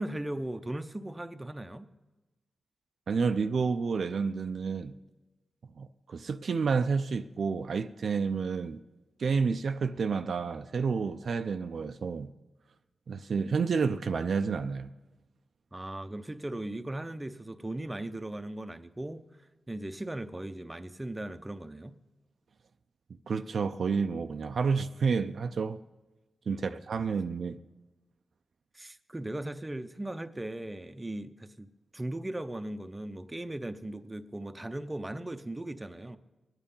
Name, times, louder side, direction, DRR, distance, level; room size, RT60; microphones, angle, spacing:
voice 1, 0.0-1.9 15.7-19.2 19.7-21.9 26.5-26.8 28.7-31.7 31.9-36.2, right 1 dB, 20° right, 0.7 m, -38 dB
voice 2, 3.1-4.9 5.8-8.8 9.2-12.3 13.1-14.9 23.3-25.8 26.5-27.6, right 5 dB, 70° right, 0.5 m, -30 dB
22.0 x 9.0 x 5.5 m
cardioid pair, 80°, 0 cm